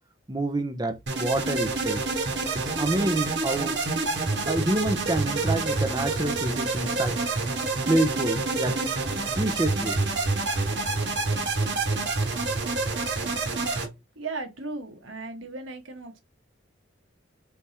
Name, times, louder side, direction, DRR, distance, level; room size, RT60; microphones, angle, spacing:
voice 1, 0.3-2.0 2.5-3.8 4.5-7.2 7.9-8.8 9.4-10.1, right 1 dB, 20° right, 0.7 m, -27 dB
sound 1, 1.1-13.9, right 3 dB, 65° right, 1.4 m, -27 dB
voice 2, 14.1-16.2, right 3 dB, 80° right, 1.4 m, -36 dB
4.6 x 3.5 x 2.8 m
head